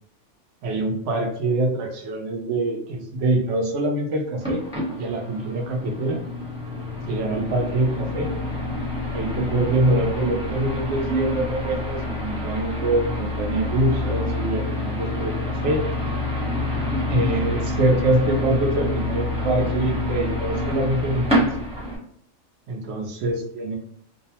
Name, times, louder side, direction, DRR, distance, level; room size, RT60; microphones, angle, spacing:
voice 1, 0.6-4.6 5.0-6.2 7.1-8.3 9.1-15.4 15.6-15.8 17.1-21.5 22.7-23.8, right 2 dB, 75° right, 2 dB, 0.9 m, -24 dB
sound 1, 4.4-22.0, left 2 dB, 5° right, 0.6 m, -27 dB
2.5 x 2.1 x 2.7 m, 0.64 s
omnidirectional pair, 1.3 m